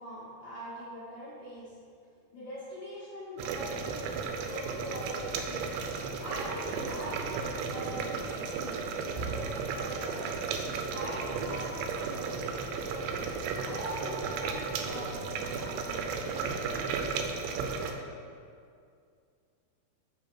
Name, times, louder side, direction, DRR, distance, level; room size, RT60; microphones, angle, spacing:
voice 1, 0.0-1.7 2.3-5.7 6.2-10.2 10.9-13.3 13.6-16.2 16.4-16.7, equal, 80° left, -9 dB, 1.5 m, -43 dB
sound 1, 3.4-17.9, right 5 dB, 85° right, 2.6 m, -34 dB
7.6 x 3.4 x 5.9 m, 2.3 s
omnidirectional pair, 4.9 m